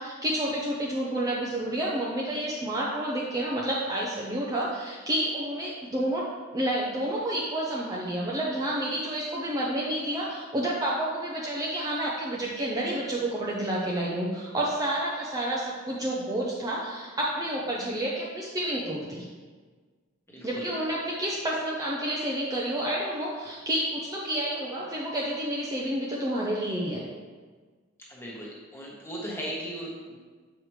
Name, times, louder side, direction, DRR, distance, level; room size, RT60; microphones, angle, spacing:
voice 1, 0.0-6.3 6.5-19.2 20.4-27.0, right 1 dB, 15° right, -5 dB, 0.6 m, -29 dB
voice 2, 20.3-20.6 28.1-30.2, equal, 10° left, -5 dB, 1.2 m, -37 dB
7.4 x 4.8 x 3.2 m, 1.5 s
head